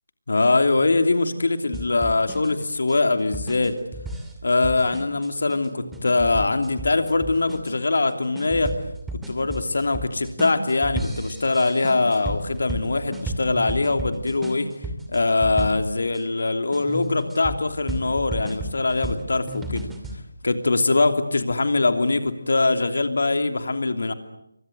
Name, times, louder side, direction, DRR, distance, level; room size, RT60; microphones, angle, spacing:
voice 1, 0.3-3.8 4.4-8.7 9.3-14.7 15.1-19.9 20.4-24.1, left 3 dB, 60° left, 8 dB, 3.0 m, -22 dB
sound 1, 1.7-16.2 16.7-20.2, right 1 dB, 5° right, 2.5 m, -33 dB
29.0 x 24.0 x 8.1 m, 0.81 s
figure-of-eight pair, 155°, 0 cm